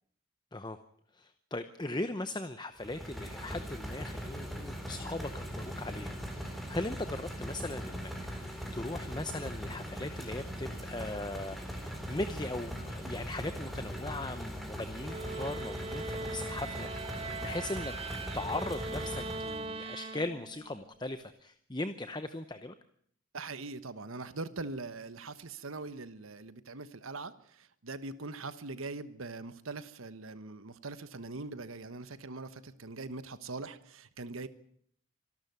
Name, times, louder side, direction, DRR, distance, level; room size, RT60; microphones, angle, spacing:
voice 1, 1.1-17.9 18.3-22.7, left 2 dB, 20° left, 10 dB, 0.8 m, -39 dB
sound 1, 2.8-19.7, equal, ahead, 4.0 m, -40 dB
sound 2, 15.0-20.7, right 3 dB, 25° right, 1.4 m, -40 dB
voice 2, 23.3-34.5, right 3 dB, 80° right, 13 dB, 1.2 m, -42 dB
26.0 x 12.5 x 9.4 m, 0.64 s
head